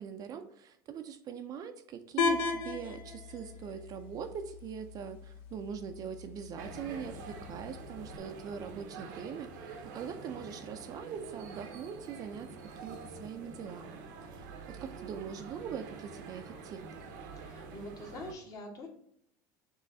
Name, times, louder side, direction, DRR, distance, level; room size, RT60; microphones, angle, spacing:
voice 1, 0.0-12.5 12.8-17.0, right 7 dB, 40° right, 8 dB, 0.4 m, -42 dB
sound 1, 2.2-8.2, left 5 dB, 65° left, 0.7 m, -37 dB
sound 2, 6.6-18.3, right 4 dB, 85° right, 0.8 m, -47 dB
voice 2, 17.3-18.9, left 1 dB, 35° left, 0 dB, 1.4 m, -45 dB
6.2 x 3.1 x 2.7 m, 0.72 s
supercardioid pair, 125°, 10 cm